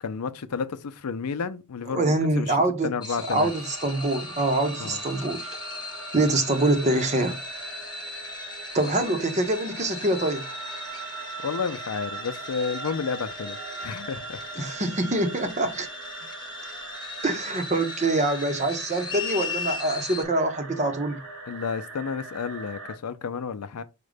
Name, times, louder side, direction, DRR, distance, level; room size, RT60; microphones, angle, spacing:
voice 1, 0.0-2.6 2.8-3.5 4.8-5.0 9.0-9.1 11.4-14.8 21.5-23.8, left 5 dB, 90° left, 0.5 m, -31 dB
voice 2, 1.9-2.9 3.3-5.5 6.1-7.4 8.7-10.4 14.6-15.9 17.2-21.2, right 2 dB, 30° right, 0.8 m, -25 dB
sound 1, 3.0-20.2, left 4 dB, 20° left, 0.7 m, -38 dB
sound 2, 3.4-23.0, right 4 dB, 70° right, 1.1 m, -40 dB
5.0 x 2.2 x 4.9 m
head